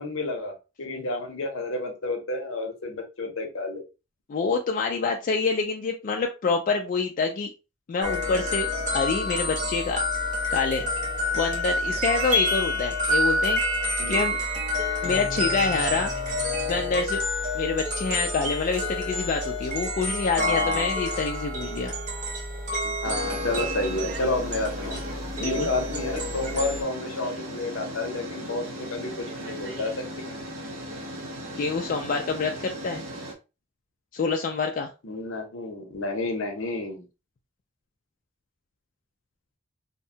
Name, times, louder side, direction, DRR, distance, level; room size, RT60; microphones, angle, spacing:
voice 1, 0.0-3.8 14.0-14.3 20.4-21.0 22.8-25.0 25.4-30.4 35.0-37.0, left 2 dB, 70° left, 4 dB, 0.7 m, -30 dB
voice 2, 4.3-7.5 7.9-10.0 10.5-10.8 11.3-13.6 14.1-14.4 15.0-16.1 16.7-17.2 17.5-21.9 25.4-25.7 31.6-33.0 34.1-34.9, left 4 dB, 40° left, 2 dB, 0.3 m, -27 dB
sound 1, 8.0-26.8, left 1 dB, 35° right, 0.8 m, -28 dB
sound 2, 18.7-19.2 20.8-20.9 23.0-33.3, equal, 70° right, 0.8 m, -37 dB
2.7 x 2.2 x 2.6 m, 0.29 s
head